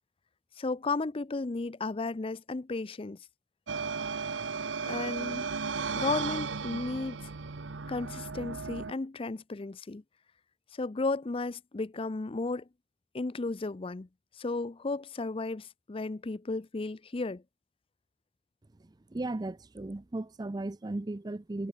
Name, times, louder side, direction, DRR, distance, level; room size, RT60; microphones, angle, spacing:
voice 1, 0.6-3.2 4.8-5.5 5.9-7.3 7.9-10.0 10.7-12.7 13.1-14.1 14.4-17.4, left 3 dB, 30° left, 0.5 m, -34 dB
sound 1, 3.7-8.9, right 5 dB, 80° right, 0.9 m, -35 dB
voice 2, 18.8-21.7, right 2 dB, 20° right, 0.4 m, -36 dB
head